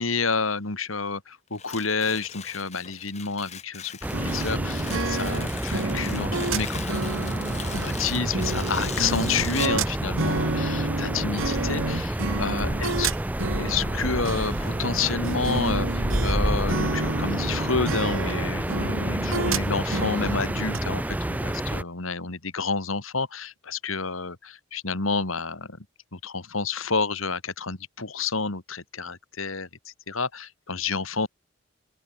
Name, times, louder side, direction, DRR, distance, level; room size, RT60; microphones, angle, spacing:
voice 1, 0.0-3.9 4.2-13.1 13.5-25.8 26.1-31.3, left 4 dB, 85° left, 2.5 m, -29 dB
Tearing, 1.5-9.8, left 8 dB, 35° left, 1.9 m, -40 dB
sound 1, 4.0-21.8, right 1 dB, 10° right, 0.4 m, -29 dB
sound 2, 4.1-16.4 16.7-20.8, right 3 dB, 85° right, 2.3 m, -30 dB
open air
head